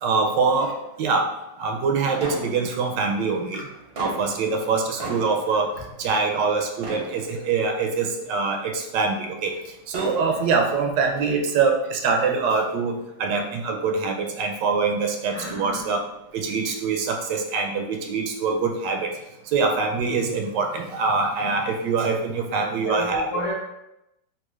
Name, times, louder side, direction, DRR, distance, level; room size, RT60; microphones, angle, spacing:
voice 1, 0.0-0.7 1.0-1.3 1.6-3.6 4.0-5.7 6.0-9.5 9.9-12.9 13.2-16.0 16.3-19.1 19.5-23.3, right 4 dB, 85° right, 3 dB, 1.2 m, -24 dB
sound 1, 2.2-3.2 3.7-6.5 6.8-7.9 8.5-8.6 9.7-10.7, right 1 dB, 50° right, 0.7 m, -36 dB
voice 2, 15.3-16.0 22.8-23.5, equal, 40° left, -4 dB, 1.0 m, -32 dB
3.6 x 2.8 x 3.0 m, 0.89 s
omnidirectional pair, 1.9 m